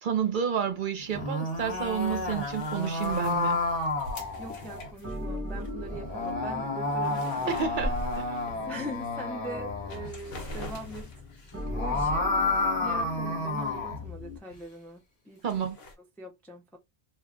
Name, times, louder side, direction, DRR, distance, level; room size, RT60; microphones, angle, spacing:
voice 1, 0.0-3.6 7.5-8.3 15.4-15.8, right 7 dB, 60° right, 0.7 m, -30 dB
sound 1, 1.0-4.9 5.9-10.1 11.5-14.0, left 2 dB, 40° left, 0.9 m, -30 dB
sound 2, 1.5-14.4, left 2 dB, 15° right, 0.9 m, -40 dB
sound 3, 1.8-5.7 6.2-6.3 6.6-8.8 9.3-9.4 9.8-11.7 15.4-15.9, left 1 dB, 65° left, 1.0 m, -42 dB
voice 2, 4.4-7.6 8.6-11.1 11.7-12.3 12.8-15.4 16.2-16.8, equal, 5° left, 0.3 m, -41 dB
2.3 x 2.2 x 3.6 m
omnidirectional pair, 1.1 m